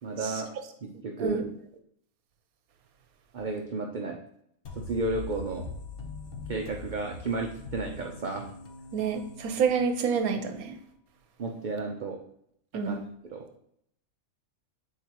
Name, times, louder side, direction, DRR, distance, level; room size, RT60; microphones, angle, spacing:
voice 1, 0.0-0.5 0.8-1.5 3.3-4.2 4.7-5.7 6.5-8.5 11.4-12.2 12.8-13.5, right 3 dB, 50° right, 1 dB, 0.6 m, -33 dB
sound 1, 4.6-10.3, left 3 dB, 45° left, 1.0 m, -42 dB
voice 2, 8.9-10.7 12.7-13.0, right 6 dB, 85° right, 7 dB, 1.2 m, -28 dB
8.3 x 4.5 x 2.9 m, 0.71 s
omnidirectional pair, 1.5 m